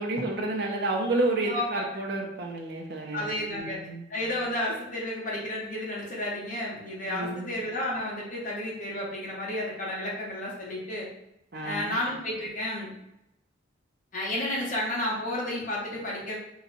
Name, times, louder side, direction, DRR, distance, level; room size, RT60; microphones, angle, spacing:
voice 1, 0.0-4.0 7.1-7.5 11.5-12.0, right 2 dB, 55° right, 0 dB, 0.7 m, -30 dB
voice 2, 1.5-1.8 3.1-3.8 4.1-11.1 11.6-12.9 14.1-16.4, left 1 dB, 40° left, -5 dB, 1.2 m, -32 dB
4.0 x 2.4 x 4.2 m, 0.85 s
head